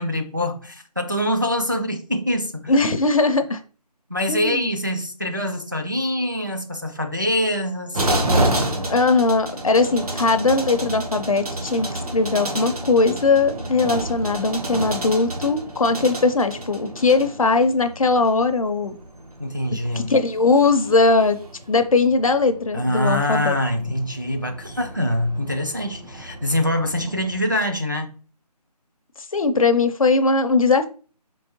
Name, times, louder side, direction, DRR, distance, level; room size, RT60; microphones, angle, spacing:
voice 1, 0.0-2.8 4.1-8.0 19.4-20.1 22.7-28.1, left 1 dB, 30° right, 0.3 m, -24 dB
voice 2, 2.7-3.6 4.3-4.7 8.9-19.0 19.9-21.4 21.7-23.6 29.3-30.9, left 3 dB, 55° left, 0.5 m, -19 dB
sound 1, 7.9-27.4, right 1 dB, 60° right, 1.0 m, -30 dB
4.5 x 3.0 x 2.9 m
figure-of-eight pair, 170°, 21 cm